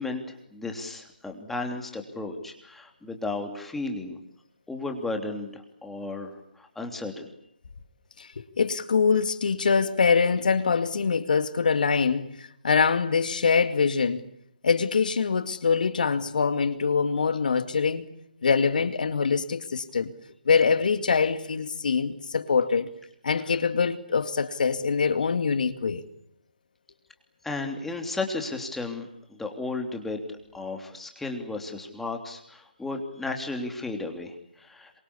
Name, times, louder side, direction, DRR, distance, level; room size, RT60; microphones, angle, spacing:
voice 1, 0.0-4.2 4.7-7.3 27.4-34.9, left 3 dB, 5° left, 3 dB, 3.2 m, -34 dB
voice 2, 8.2-14.3 14.6-18.1 18.4-20.1 20.5-22.9 23.2-26.0, left 5 dB, 60° left, 11 dB, 2.2 m, -24 dB
27.0 x 24.5 x 8.4 m, 0.76 s
figure-of-eight pair, 150°, 5 cm